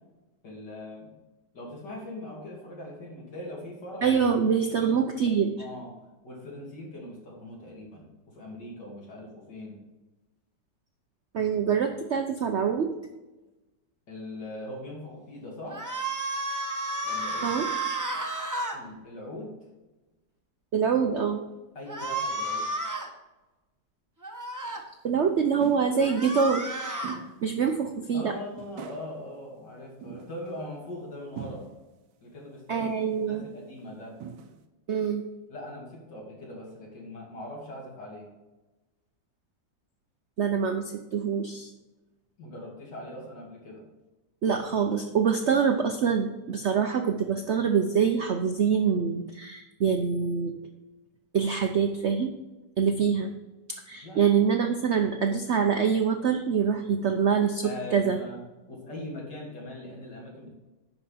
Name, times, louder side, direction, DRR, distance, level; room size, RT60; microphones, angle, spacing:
voice 1, 0.4-1.1 1.5-4.2 4.8-4.9 5.6-5.9 6.2-9.8 14.1-15.8 17.0-17.5 18.7-19.5 21.7-22.7 28.1-31.6 32.2-34.1 35.5-38.3 42.4-43.8 54.0-54.2 57.6-58.4 58.7-60.5, left 1 dB, 70° left, -3 dB, 3.4 m, -41 dB
voice 2, 4.0-5.5 11.3-12.9 17.4-17.7 20.7-21.4 25.0-26.6 27.4-28.3 32.7-33.4 34.9-35.3 40.4-41.7 44.4-50.5 51.3-52.3 52.8-53.3 53.9-58.2, right 6 dB, 65° right, 5 dB, 0.7 m, -25 dB
sound 1, 15.7-18.8 21.9-23.1 24.2-24.8 26.0-27.2, right 2 dB, 15° right, 0.6 m, -32 dB
sound 2, 24.8-24.9 25.6-26.0 27.0-27.4 27.9-28.0 28.6-29.1 30.0-30.6 31.4-31.8 32.8-33.3 33.8-33.9 34.2-34.6, right 7 dB, 80° right, 1.4 m, -41 dB
10.5 x 5.1 x 5.7 m, 1.1 s
omnidirectional pair, 2.0 m